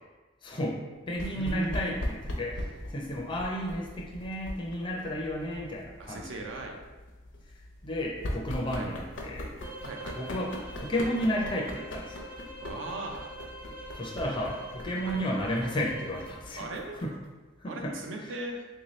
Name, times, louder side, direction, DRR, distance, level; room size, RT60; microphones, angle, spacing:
voice 1, 0.4-0.8 1.1-2.0 2.4-6.4 7.8-9.5 10.1-10.5 10.8-12.2 13.9-16.7 17.0-17.1 17.6-17.9, equal, 25° left, -2 dB, 0.4 m, -32 dB
sound 1, 1.1-17.3, left 1 dB, 75° left, 0.6 m, -41 dB
voice 2, 1.4-2.0 6.0-6.8 8.7-8.9 9.8-10.3 12.6-13.3 15.0-15.2 16.6-17.0 17.7-18.7, right 2 dB, 75° right, 1 dB, 0.5 m, -38 dB
sound 2, 9.6-16.4, right 1 dB, 50° right, 0.9 m, -45 dB
3.4 x 2.7 x 3.1 m, 1.2 s
head